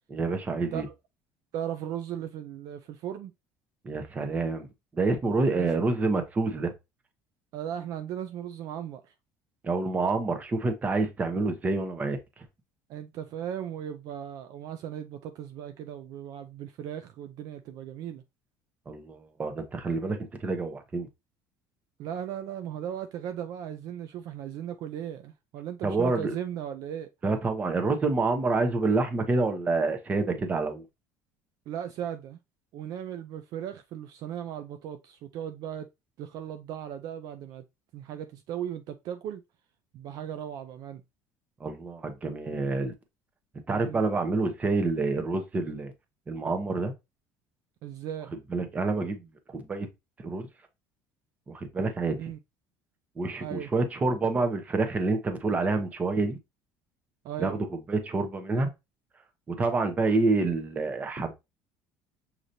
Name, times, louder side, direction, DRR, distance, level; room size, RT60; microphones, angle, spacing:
voice 1, 0.1-0.9 3.8-4.7 4.9-6.7 9.6-12.2 18.9-21.1 25.8-26.4 27.2-30.8 41.6-42.9 43.7-45.9 46.3-46.9 48.5-49.9 50.2-50.5 51.5-52.2 53.2-56.4 57.4-58.7 59.5-61.3, right 3 dB, 20° right, 0.8 m, -27 dB
voice 2, 1.5-3.3 5.5-5.7 7.5-9.1 12.9-18.2 22.0-27.1 31.7-32.4 32.7-35.9 36.2-37.6 37.9-39.4 39.9-41.0 43.7-44.1 47.8-48.3 52.2-52.4 53.4-53.7 57.2-57.6, right 10 dB, 55° right, 0.4 m, -37 dB
6.4 x 2.9 x 2.7 m
cardioid pair, 155°, 8 cm